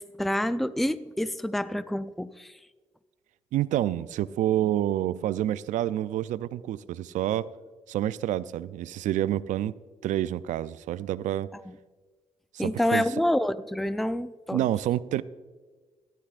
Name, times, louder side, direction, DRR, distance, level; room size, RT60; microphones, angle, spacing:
voice 1, 0.0-2.6 11.7-11.8 12.6-14.6, left 1 dB, ahead, 14 dB, 0.4 m, -28 dB
voice 2, 3.5-7.5 7.9-9.7 10.0-11.5 12.5-13.0 14.5-15.2, right 12 dB, 75° right, 17 dB, 0.4 m, -28 dB
13.5 x 11.5 x 2.4 m, 1.4 s
supercardioid pair, 55°, 13 cm